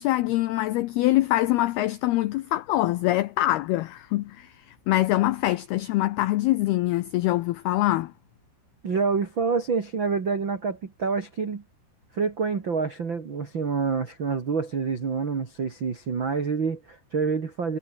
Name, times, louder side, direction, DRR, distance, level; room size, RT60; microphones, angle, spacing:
voice 1, 0.0-8.1, left 16 dB, 90° left, 2.2 m, -24 dB
voice 2, 8.8-11.6 12.1-17.8, right 5 dB, 40° right, 1.8 m, -27 dB
omnidirectional pair, 5.5 m